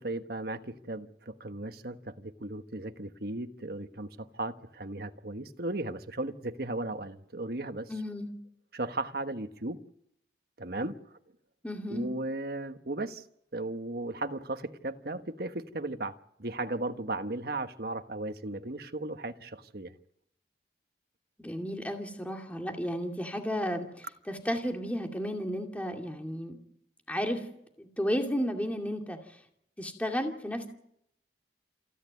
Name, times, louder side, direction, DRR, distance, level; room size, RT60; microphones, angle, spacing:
voice 1, 0.0-7.9 8.7-9.8 10.6-11.0 11.9-13.3 13.5-19.9, right 2 dB, 55° right, 1.3 m, -36 dB
voice 2, 7.9-8.3 11.6-12.1 21.4-26.6 27.1-27.5 27.8-29.4 29.8-30.7, equal, 10° left, 2.4 m, -33 dB
28.0 x 11.0 x 9.4 m
head